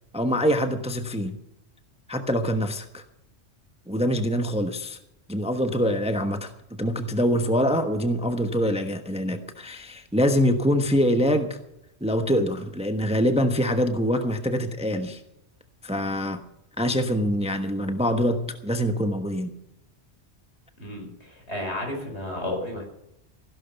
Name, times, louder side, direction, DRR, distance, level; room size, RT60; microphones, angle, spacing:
voice 1, 0.1-1.4 2.1-3.0 3.9-5.0 5.3-11.6 12.0-15.2 15.8-16.4 16.8-19.5, equal, 5° right, 6 dB, 1.0 m, -24 dB
voice 2, 20.8-22.8, left 1 dB, 70° left, 2 dB, 5.4 m, -32 dB
16.0 x 12.0 x 5.7 m, 0.81 s
omnidirectional pair, 1.2 m